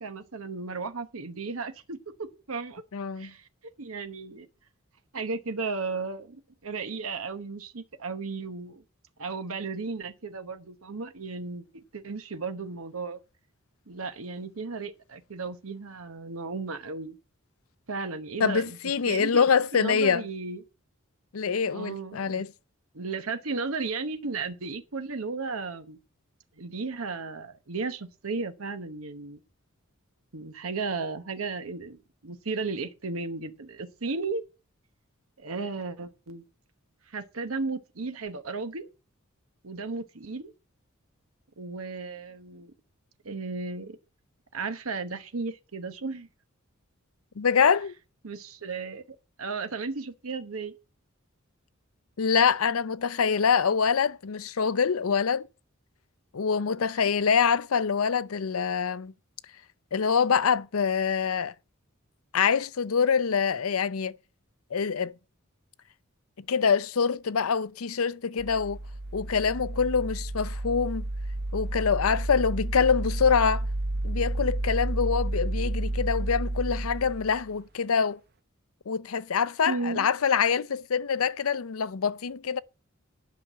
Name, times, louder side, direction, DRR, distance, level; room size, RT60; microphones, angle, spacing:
voice 1, 0.0-2.8 3.2-3.5 3.8-4.5 5.1-8.8 9.2-13.2 13.9-17.2 17.9-18.8 19.1-20.6 21.7-22.4 22.9-26.0 26.6-29.4 30.3-34.4 35.4-36.4 37.1-38.9 39.6-40.5 41.6-42.7 43.2-44.0 44.5-46.3 48.2-49.0 49.4-50.7 79.7-80.1, right 4 dB, 85° right, 1.0 m, -35 dB
voice 2, 2.9-3.3 18.4-20.2 21.3-22.5 47.4-47.9 52.2-55.5 56.3-59.1 59.9-61.5 62.3-64.2 64.7-65.1 66.5-68.8 69.1-71.0 71.5-73.7 74.0-78.2 78.9-82.6, left 6 dB, 85° left, 0.6 m, -25 dB
sound 1, 68.4-77.5, right 1 dB, 50° right, 0.8 m, -31 dB
10.5 x 5.9 x 7.4 m
head